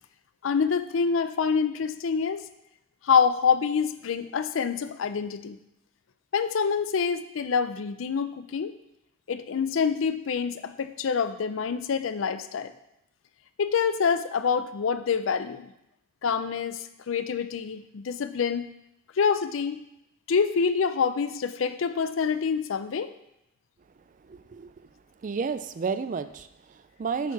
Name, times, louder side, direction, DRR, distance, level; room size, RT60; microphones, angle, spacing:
voice 1, 0.4-2.4 3.0-5.6 6.3-8.7 9.3-12.7 13.6-15.7 16.2-18.7 19.2-19.8 20.3-23.1, left 6 dB, 85° left, 12 dB, 0.5 m, -26 dB
voice 2, 24.1-24.9 25.2-27.3, right 5 dB, 40° right, 11 dB, 0.4 m, -32 dB
8.0 x 4.6 x 4.6 m, 0.83 s
head